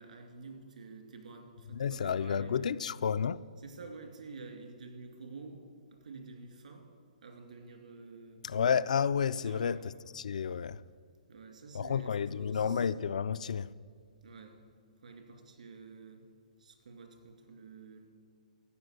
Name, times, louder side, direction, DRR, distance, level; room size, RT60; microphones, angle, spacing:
voice 1, 0.0-2.9 3.6-5.6 5.9-6.9 7.2-8.4 9.4-9.8 11.3-12.9 14.2-14.6 15.0-16.2 16.6-18.1, right 4 dB, 75° right, 2.4 m, -49 dB
voice 2, 1.7-3.5 8.4-10.8 11.7-13.7, left 7 dB, 65° left, 0.3 m, -31 dB
14.0 x 8.4 x 6.5 m
hypercardioid pair, 170°, 4 cm